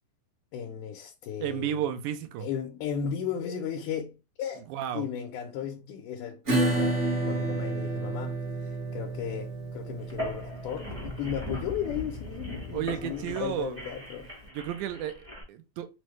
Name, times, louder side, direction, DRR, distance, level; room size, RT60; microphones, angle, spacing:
voice 1, 0.5-1.8 2.4-4.7 4.9-14.3, left 8 dB, 85° left, 2.1 m, -35 dB
voice 2, 1.4-2.5 4.7-5.1 12.7-13.8 14.5-15.9, right 10 dB, 90° right, 2.1 m, -33 dB
Acoustic guitar / Strum, 6.5-13.7, right 2 dB, 50° right, 0.8 m, -31 dB
sound 1, 10.0-15.4, left 1 dB, 20° right, 0.3 m, -39 dB
5.8 x 2.1 x 3.1 m
omnidirectional pair, 3.5 m